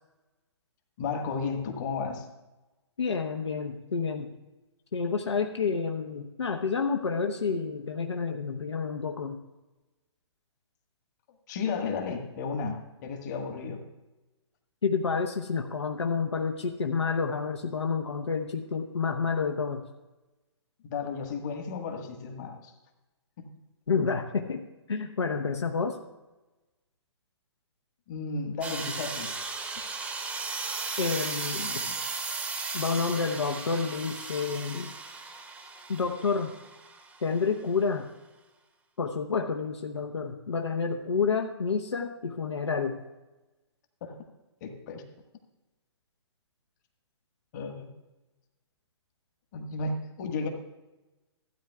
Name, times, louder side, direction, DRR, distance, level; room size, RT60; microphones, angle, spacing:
voice 1, 1.0-2.3 11.5-13.8 20.8-22.7 23.4-23.5 28.1-29.3 44.0-44.2 44.6-45.0 47.5-47.9 49.5-50.5, left 4 dB, 40° left, 4 dB, 1.6 m, -33 dB
voice 2, 3.0-4.3 4.9-9.4 14.8-19.8 23.9-26.0 31.0-31.8 32.7-34.9 35.9-36.5 37.2-38.1 39.0-43.0, left 5 dB, 70° left, 3 dB, 1.0 m, -29 dB
sound 1, 28.6-37.2, right 4 dB, 10° right, 0.8 m, -36 dB
15.5 x 9.2 x 2.4 m, 1.1 s
figure-of-eight pair, 125°, 15 cm